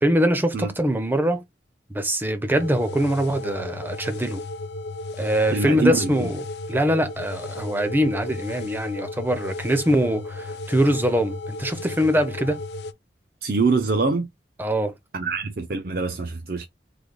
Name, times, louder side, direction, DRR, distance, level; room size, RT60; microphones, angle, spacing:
voice 1, 0.0-1.4 1.9-4.4 5.2-6.4 6.7-12.6 14.6-14.9, equal, 10° right, 0.5 m, -23 dB
sound 1, 2.5-12.9, left 2 dB, 70° left, 0.4 m, -34 dB
voice 2, 5.5-6.3 13.4-14.3 15.1-16.7, right 4 dB, 55° right, 0.5 m, -24 dB
3.3 x 2.3 x 3.6 m
head